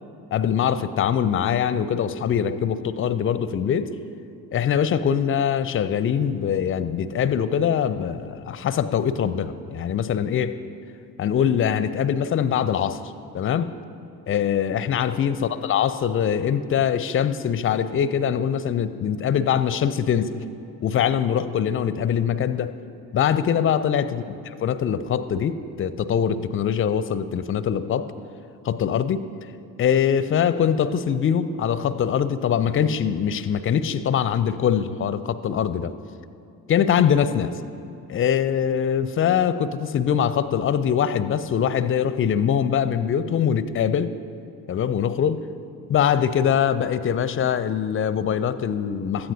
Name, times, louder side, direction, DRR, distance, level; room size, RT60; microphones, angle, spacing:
voice 1, 0.3-3.9 4.5-10.6 11.2-13.0 13.3-13.7 14.3-20.3 20.8-22.7 23.1-24.2 24.6-28.1 28.6-29.2 29.8-35.9 36.7-37.5 38.1-44.1 44.7-45.4 45.9-49.3, left 8 dB, 30° left, 14 dB, 0.5 m, -23 dB
16.5 x 13.0 x 2.8 m, 2.6 s
figure-of-eight pair, 45°, 47 cm